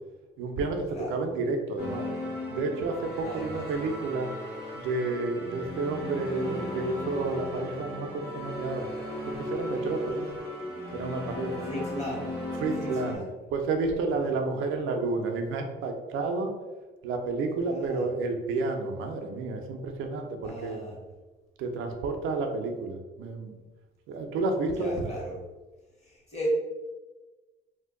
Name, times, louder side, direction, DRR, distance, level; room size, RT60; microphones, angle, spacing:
voice 1, 0.4-2.1 2.5-4.3 4.7-8.9 9.2-10.3 10.9-11.7 12.6-13.2 13.5-16.5 17.0-20.8 21.6-23.6 24.1-25.1, right 3 dB, 90° right, 4 dB, 0.5 m, -30 dB
voice 2, 0.9-1.2 3.2-3.6 11.6-12.3 12.8-13.3 14.2-14.3 17.7-18.0 20.4-21.0 24.7-25.4 26.0-26.5, equal, 35° left, -4 dB, 1.3 m, -36 dB
sound 1, 1.8-13.2, left 1 dB, 55° left, 1.1 m, -36 dB
2.6 x 2.1 x 3.6 m, 1.2 s
cardioid pair, 90°, 20 cm